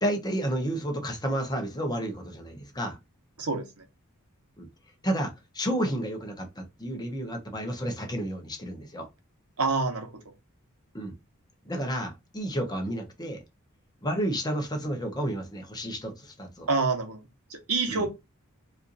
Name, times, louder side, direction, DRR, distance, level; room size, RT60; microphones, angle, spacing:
voice 1, 0.0-3.0 4.6-4.7 5.0-9.1 10.9-11.1 11.6-13.4 14.0-16.7 17.9-18.1, right 1 dB, 20° left, 0.9 m, -31 dB
voice 2, 9.6-10.1 16.7-17.2 17.5-18.1, right 3 dB, 75° right, 1.0 m, -26 dB
4.4 x 2.6 x 2.6 m
head